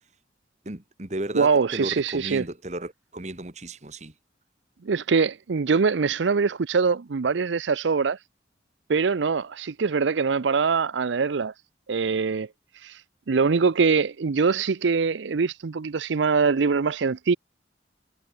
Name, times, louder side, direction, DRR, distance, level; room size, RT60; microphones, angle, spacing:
voice 1, 0.6-4.1, right 1 dB, 40° right, 1.7 m, -34 dB
voice 2, 1.3-2.4 4.8-8.2 8.9-11.5 11.9-12.5 12.8-13.0 13.3-17.4, right 5 dB, 80° right, 0.5 m, -23 dB
head